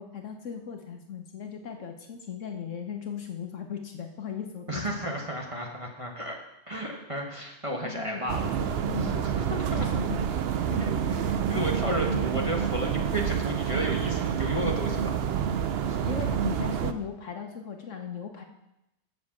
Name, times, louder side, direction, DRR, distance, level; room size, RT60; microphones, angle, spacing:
voice 1, 0.0-5.1 7.8-8.2 8.6-9.4 9.8-10.2 10.7-11.0 11.5-11.6 16.0-18.4, left 7 dB, 60° left, 4 dB, 1.1 m, -38 dB
voice 2, 4.7-6.4 6.7-8.5 9.0-10.0 10.7-11.2 11.5-15.1 15.8-16.0, right 1 dB, 25° right, -1 dB, 1.1 m, -33 dB
sound 1, 8.3-16.9, right 8 dB, 65° right, 0.6 m, -28 dB
7.3 x 6.4 x 7.2 m, 0.89 s
omnidirectional pair, 1.6 m